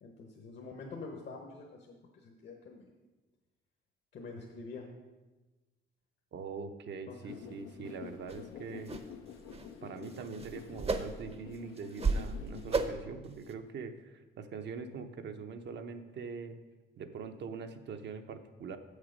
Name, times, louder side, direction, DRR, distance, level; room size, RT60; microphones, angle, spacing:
voice 1, 0.0-2.0 2.2-2.9 4.1-4.9 7.1-7.2, left 3 dB, 60° left, 1 dB, 1.0 m, -46 dB
voice 2, 6.3-8.9 9.8-16.6 17.0-18.8, right 5 dB, 60° right, 7 dB, 0.8 m, -43 dB
sound 1, 7.3-12.7, left 8 dB, 90° left, 0.6 m, -48 dB
sound 2, 8.3-8.4 8.9-9.1 9.4-9.7 10.0-11.3 11.8-12.3 12.7-13.1 13.5-13.6, right 4 dB, 30° right, 0.7 m, -33 dB
7.3 x 6.5 x 5.1 m, 1.2 s
cardioid pair, 90°, 20 cm